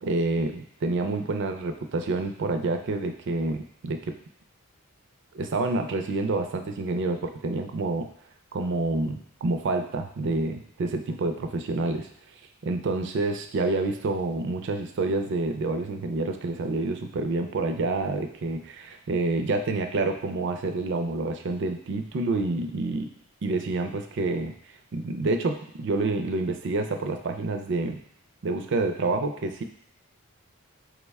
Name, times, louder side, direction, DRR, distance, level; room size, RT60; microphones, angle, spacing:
voice 1, 0.0-4.2 5.3-8.1 8.5-12.1 12.6-23.1 23.4-24.5 24.9-28.0 28.4-29.6, right 3 dB, 55° right, 6 dB, 0.4 m, -28 dB
4.7 x 2.1 x 3.4 m, 0.67 s
head